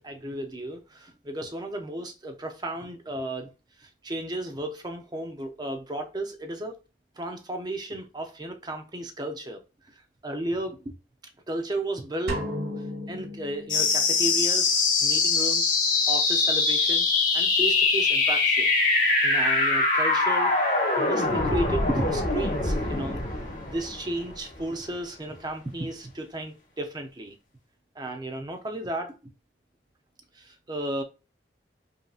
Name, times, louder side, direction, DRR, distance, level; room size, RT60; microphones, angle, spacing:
voice 1, 0.0-3.5 3.8-6.8 7.2-9.6 10.2-10.9 11.5-12.5 13.1-14.7 15.0-15.7 16.1-17.1 17.3-18.7 19.2-23.2 23.6-27.4 28.0-29.2 30.3-31.0, right 1 dB, 25° right, 0.6 m, -34 dB
sound 1, 12.3-14.3, left 1 dB, 75° right, 0.9 m, -34 dB
sound 2, 13.7-24.7, left 3 dB, 50° left, 1.3 m, -23 dB
5.4 x 2.8 x 2.4 m
head